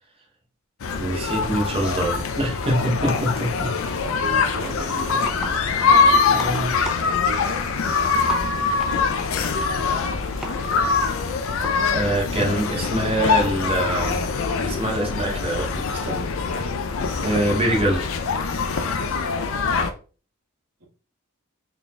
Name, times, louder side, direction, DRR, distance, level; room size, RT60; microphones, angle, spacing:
sound 1, 0.8-19.9, left 5 dB, 65° left, 0.4 m, -23 dB
voice 1, 1.0-3.7 6.3-6.7 11.9-14.2 14.6-16.3 17.2-18.1, right 1 dB, 25° right, 0 dB, 0.8 m, -24 dB
voice 2, 4.1-8.8 20.8-20.9, right 3 dB, 80° right, -5 dB, 1.6 m, -39 dB
sound 2, 4.8-11.9, right 1 dB, ahead, 0.4 m, -39 dB
3.8 x 3.7 x 2.3 m, 0.36 s
head